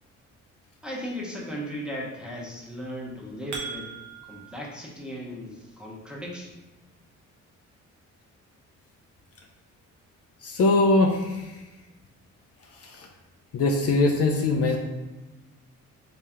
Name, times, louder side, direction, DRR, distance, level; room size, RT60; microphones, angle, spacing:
voice 1, 0.8-3.9 4.2-6.6, equal, 5° right, -3 dB, 0.8 m, -36 dB
sound 1, 3.0-4.5, right 4 dB, 70° right, 0.8 m, -38 dB
voice 2, 10.4-11.4 13.5-14.8, left 2 dB, 50° left, 2 dB, 0.5 m, -21 dB
3.1 x 2.9 x 3.5 m, 1.1 s
cardioid pair, 90°, 30 cm